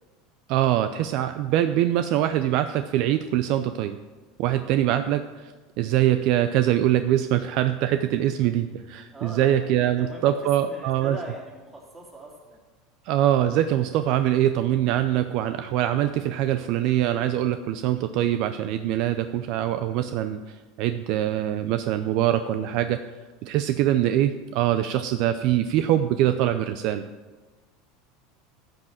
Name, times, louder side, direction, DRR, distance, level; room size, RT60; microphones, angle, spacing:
voice 1, 0.5-4.0 4.4-11.2 13.1-23.0 23.4-27.0, right 12 dB, 60° right, 10 dB, 0.5 m, -23 dB
voice 2, 9.1-10.3 10.6-12.6, right 2 dB, 20° right, -2 dB, 3.3 m, -41 dB
11.5 x 6.2 x 7.5 m, 1.3 s
supercardioid pair, 130°, 0 cm